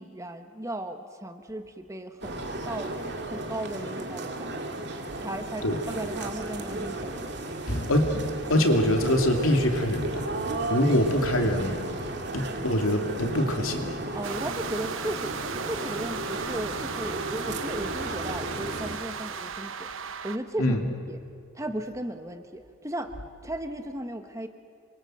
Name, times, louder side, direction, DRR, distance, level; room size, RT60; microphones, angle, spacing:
voice 1, 0.0-2.9 3.3-4.5 5.2-7.8 14.1-20.8 21.1-21.2 21.5-23.1 23.4-24.5, right 1 dB, 15° right, 7 dB, 1.1 m, -36 dB
sound 1, 2.2-19.0, right 2 dB, 55° right, 2.3 m, -34 dB
voice 2, 7.7-8.1 8.5-10.3 10.7-11.8 12.3-13.9 20.6-20.8, left 1 dB, 80° left, 4 dB, 2.9 m, -24 dB
sound 2, 14.2-20.4, right 6 dB, 70° right, 1.0 m, -37 dB
27.5 x 24.0 x 7.8 m, 2.3 s
head